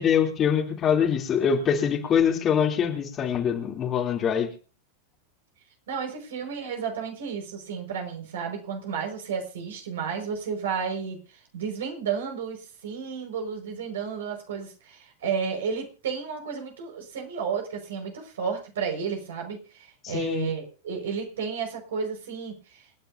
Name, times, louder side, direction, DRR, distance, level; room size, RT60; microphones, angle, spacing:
voice 1, 0.0-4.5 20.0-20.5, left 7 dB, 25° left, 2.9 m, -24 dB
voice 2, 5.9-11.2 11.5-23.1, right 6 dB, 60° right, 5.0 m, -32 dB
28.0 x 10.5 x 2.7 m
figure-of-eight pair, 90°, 0 cm